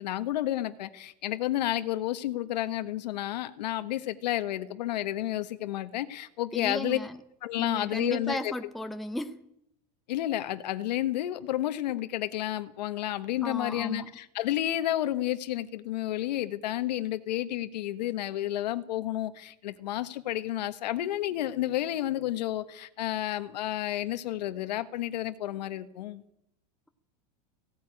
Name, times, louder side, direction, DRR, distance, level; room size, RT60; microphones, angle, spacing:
voice 1, 0.0-7.0 7.4-8.5 10.1-26.2, left 13 dB, 85° left, 1.3 m, -31 dB
voice 2, 6.5-7.2 7.6-9.4 13.4-14.1, left 1 dB, ahead, 0.7 m, -34 dB
16.5 x 16.5 x 9.8 m
supercardioid pair, 145°, 21 cm